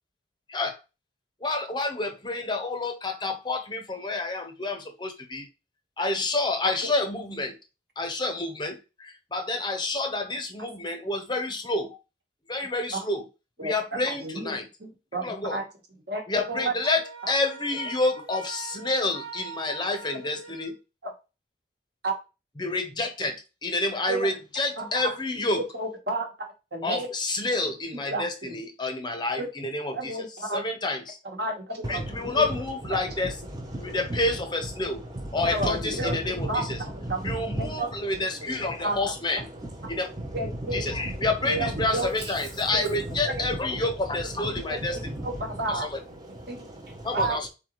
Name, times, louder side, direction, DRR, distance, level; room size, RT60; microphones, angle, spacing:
voice 1, 1.4-5.5 6.0-7.5 8.0-12.0 12.5-13.2 13.6-14.7 15.2-15.6 16.3-20.7 22.6-25.6 26.8-30.2 30.5-31.2 31.9-33.4 33.8-35.0 35.3-36.8 37.2-39.5 39.9-40.1 40.7-45.0 45.7-45.8 47.0-47.5, left 2 dB, 25° left, 5 dB, 0.7 m, -29 dB
voice 2, 14.2-15.6 16.1-16.8 17.2-17.3 21.0-21.1 22.0-22.1 24.1-24.3 24.8-25.1 25.7-27.1 28.1-28.6 29.4-29.5 29.9-30.6 31.2-32.4 35.4-37.3 37.6-37.9 38.8-39.0 40.3-40.9 41.5-42.3 42.7-43.0 43.3-43.4 44.7-45.9 46.5-46.6 47.1-47.5, right 2 dB, 55° right, 3 dB, 1.2 m, -31 dB
Wind instrument woodwind instrument, 16.8-20.8, right 5 dB, 85° right, 1.7 m, -42 dB
voice 3, 31.8-32.4 33.2-34.2 34.8-38.2 38.4-38.9 39.5-42.1 42.5-45.8 46.2-47.2, right 1 dB, 20° right, -2 dB, 0.6 m, -36 dB
3.9 x 3.8 x 3.0 m, 0.28 s
head